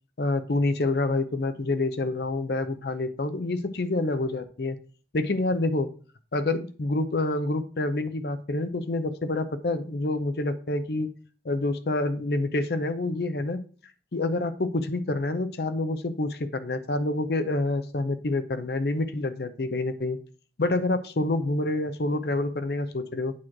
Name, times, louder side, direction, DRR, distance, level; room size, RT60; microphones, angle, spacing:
voice 1, 0.2-4.8 5.1-5.9 6.3-11.1 11.4-13.6 14.1-20.2 20.6-23.3, left 2 dB, 60° left, 11 dB, 0.6 m, -27 dB
8.6 x 3.1 x 5.9 m, 0.40 s
head